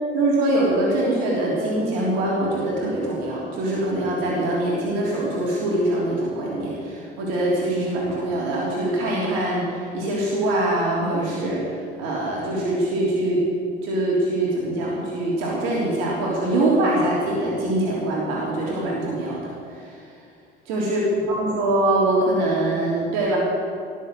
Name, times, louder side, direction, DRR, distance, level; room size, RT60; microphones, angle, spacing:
voice 1, 0.1-13.4 13.8-20.0 20.7-23.4, right 1 dB, 60° right, -4 dB, 3.4 m, -23 dB
19.5 x 7.3 x 7.9 m, 2.3 s
figure-of-eight pair, 60°, 29 cm